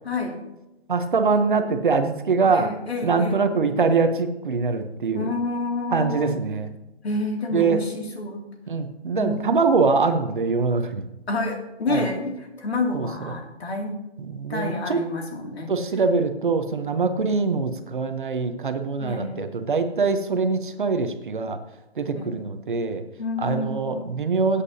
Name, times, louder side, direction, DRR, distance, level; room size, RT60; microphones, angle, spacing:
voice 1, 0.0-0.4 2.4-3.5 5.1-6.4 7.0-8.4 9.1-9.4 11.3-14.0 14.5-15.7 19.0-19.4 22.1-22.4 23.2-24.1, left 2 dB, 70° left, 1 dB, 2.6 m, -29 dB
voice 2, 0.9-2.7 3.0-5.3 5.9-6.7 7.5-7.8 8.7-11.0 11.9-12.0 12.9-13.3 14.2-15.0 15.7-21.6 22.0-23.0 23.4-24.6, right 4 dB, 50° right, 8 dB, 0.9 m, -23 dB
16.5 x 8.4 x 2.8 m, 0.92 s
hypercardioid pair, 175°, 33 cm